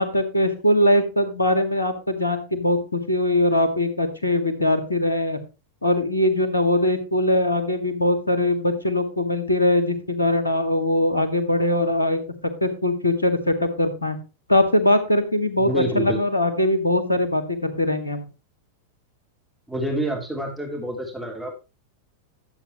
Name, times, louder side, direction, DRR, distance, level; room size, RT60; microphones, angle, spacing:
voice 1, 0.0-5.4 5.8-12.2 12.6-14.2 14.5-18.3, left 1 dB, 80° left, 8 dB, 1.8 m, -21 dB
voice 2, 15.6-16.2 19.7-21.5, right 1 dB, 5° right, -1 dB, 2.9 m, -27 dB
12.0 x 8.2 x 3.0 m, 0.30 s
figure-of-eight pair, 90°, 0 cm